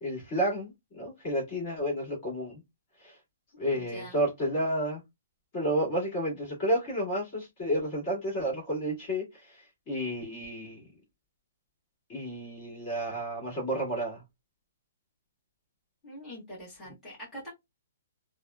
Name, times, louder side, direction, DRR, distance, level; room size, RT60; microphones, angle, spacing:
voice 1, 0.0-2.6 3.0-3.2 3.6-5.0 5.5-10.8 12.1-14.2, right 1 dB, 25° left, 1.8 m, -31 dB
voice 2, 3.7-4.2 16.0-17.5, equal, 5° left, 1.5 m, -44 dB
3.5 x 2.1 x 2.2 m
hypercardioid pair, 175°, 0 cm